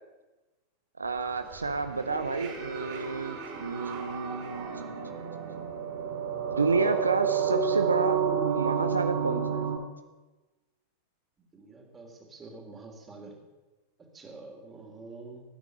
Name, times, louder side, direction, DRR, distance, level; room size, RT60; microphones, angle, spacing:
voice 1, 1.0-5.2 6.5-9.6, right 4 dB, 75° right, 10 dB, 0.7 m, -30 dB
sound 1, 1.2-9.8, right 7 dB, 40° right, 4.5 m, -31 dB
voice 2, 11.5-13.4 14.1-15.4, right 3 dB, 20° right, 2 dB, 3.4 m, -47 dB
18.0 x 9.6 x 6.9 m, 1.2 s
figure-of-eight pair, 90°, 0 cm